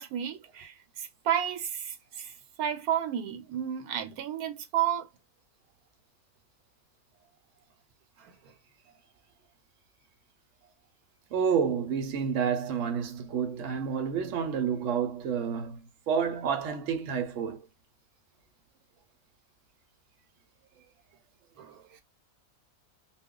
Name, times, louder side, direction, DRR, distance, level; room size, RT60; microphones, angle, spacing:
voice 1, 0.0-2.3 2.6-5.1 8.3-8.4 21.6-22.0, right 10 dB, 80° right, 1.1 m, -32 dB
voice 2, 11.3-15.8 16.1-17.6, right 7 dB, 60° right, 1.0 m, -29 dB
2.3 x 2.3 x 3.6 m
omnidirectional pair, 1.6 m